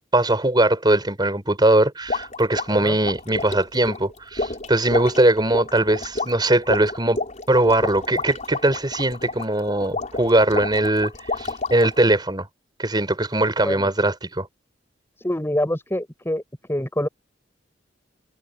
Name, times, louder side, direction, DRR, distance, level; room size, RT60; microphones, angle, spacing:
voice 1, 0.1-7.2 7.5-11.1 11.4-12.5 12.8-14.5, right 1 dB, 25° right, 4.4 m, -20 dB
sound 1, 2.1-12.0, left 3 dB, 40° left, 4.7 m, -30 dB
voice 2, 15.2-16.4 16.7-17.1, left 1 dB, 15° left, 6.7 m, -25 dB
head